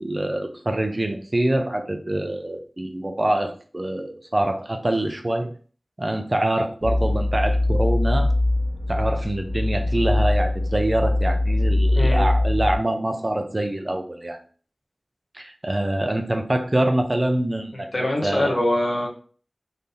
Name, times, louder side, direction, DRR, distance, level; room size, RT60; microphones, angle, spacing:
voice 1, 0.0-5.5 6.0-8.3 8.9-14.4 15.3-17.9 18.2-18.6, right 1 dB, 35° right, 5 dB, 0.6 m, -25 dB
sound 1, 6.8-12.8, left 1 dB, 15° right, 1.5 m, -22 dB
voice 2, 11.9-12.3 17.7-19.1, left 1 dB, 70° left, 0 dB, 1.0 m, -23 dB
4.0 x 2.7 x 3.3 m, 0.42 s
wide cardioid pair, 55°, 0 cm